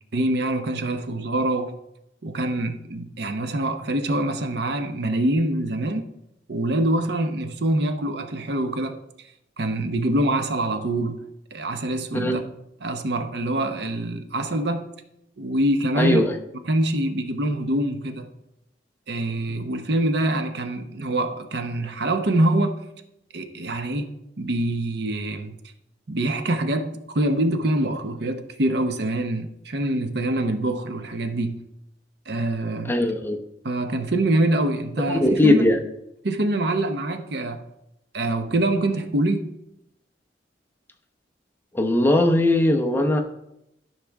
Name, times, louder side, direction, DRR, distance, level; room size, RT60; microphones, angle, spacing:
voice 1, 0.1-1.8 2.2-6.0 6.5-9.0 9.6-11.2 11.5-12.4 12.8-14.9 15.4-16.2 16.6-18.3 19.1-22.9 23.3-25.6 26.1-31.6 32.3-33.0 33.6-35.6 36.2-37.6 38.1-39.5, right 1 dB, 65° right, 0.8 m, -25 dB
voice 2, 16.0-16.3 32.8-33.4 35.0-35.8 41.7-43.2, left 1 dB, 10° left, 0.9 m, -19 dB
13.5 x 5.9 x 3.5 m
head